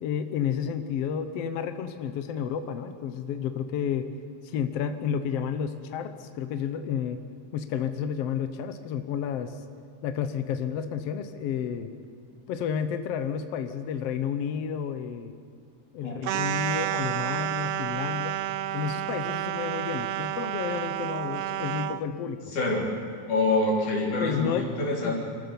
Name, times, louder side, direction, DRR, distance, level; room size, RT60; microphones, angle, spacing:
voice 1, 0.0-4.1 4.4-7.2 7.5-9.6 10.0-11.9 12.5-15.3 15.9-18.4 18.7-22.4 24.2-24.7 25.0-25.1, left 8 dB, 65° left, 9 dB, 1.8 m, -31 dB
sound 1, 16.2-22.0, right 13 dB, 75° right, 1.6 m, -30 dB
voice 2, 22.5-22.9 23.3-25.1, left 2 dB, 90° left, -2 dB, 5.0 m, -26 dB
26.5 x 14.0 x 7.0 m, 2.2 s
omnidirectional pair, 3.5 m